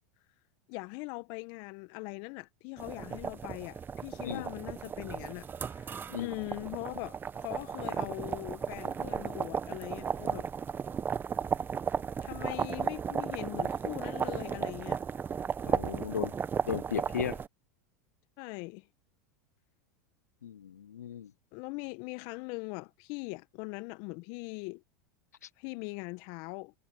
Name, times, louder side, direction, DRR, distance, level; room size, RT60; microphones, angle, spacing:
voice 1, 0.7-10.5 12.2-15.0 18.4-18.9 21.5-24.8 25.6-26.7, left 27 dB, 55° left, 1.4 m, -41 dB
sound 1, 2.8-17.5, right 6 dB, 25° right, 1.2 m, -35 dB
voice 2, 15.6-16.3 16.6-17.4 20.4-21.3, left 9 dB, 80° left, 0.8 m, -35 dB
hypercardioid pair, 90°, 9 cm